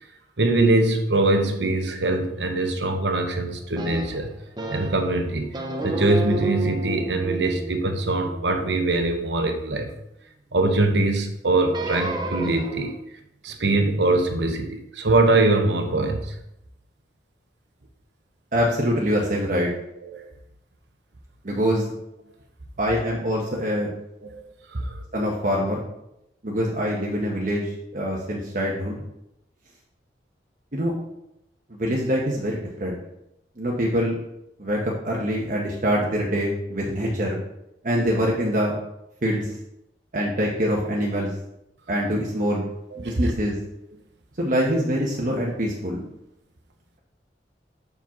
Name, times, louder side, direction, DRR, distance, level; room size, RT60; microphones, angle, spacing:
voice 1, 0.4-4.3 4.7-5.6 5.8-9.9 10.5-13.0 13.4-16.3 20.0-20.3 24.2-24.4 24.7-25.0 42.9-43.1, right 2 dB, 75° right, 5 dB, 1.0 m, -22 dB
sound 1, 3.8-5.1 5.5-9.8 11.7-13.0, right 2 dB, 25° right, 0.7 m, -32 dB
voice 2, 18.5-19.7 21.4-21.8 22.8-23.9 25.1-25.8 26.4-29.0 30.7-30.9 31.7-33.0 33.6-34.2 34.6-37.4 37.8-38.8 39.2-39.5 40.1-41.3 41.9-42.7 43.0-43.6 44.4-46.0, equal, 50° right, -2 dB, 1.0 m, -24 dB
5.4 x 4.9 x 6.0 m, 0.84 s
head